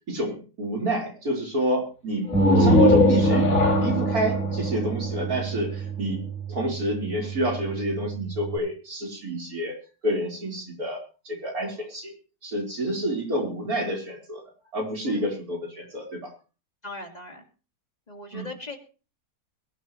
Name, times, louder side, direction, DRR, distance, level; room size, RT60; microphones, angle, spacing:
voice 1, 0.1-3.5 3.8-6.2 6.5-9.8 10.0-12.1 12.4-14.4 14.7-16.3 18.3-18.5, right 1 dB, 65° right, 0 dB, 4.7 m, -29 dB
sound 1, 2.2-5.9, left 2 dB, 55° left, 2.4 m, -22 dB
Bass guitar, 2.3-8.6, right 5 dB, ahead, 5.4 m, -27 dB
voice 2, 16.8-17.4 18.1-18.8, left 3 dB, 25° left, 4 dB, 2.3 m, -37 dB
22.5 x 11.5 x 3.1 m, 0.34 s
omnidirectional pair, 1.7 m